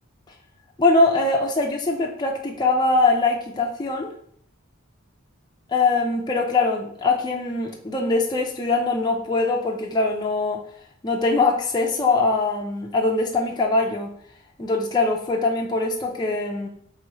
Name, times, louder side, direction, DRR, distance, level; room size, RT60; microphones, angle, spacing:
voice 1, 0.8-4.1 5.7-10.6 11.0-14.1 14.6-16.7, left 3 dB, 20° left, 0 dB, 0.4 m, -22 dB
3.1 x 3.1 x 4.6 m, 0.63 s
head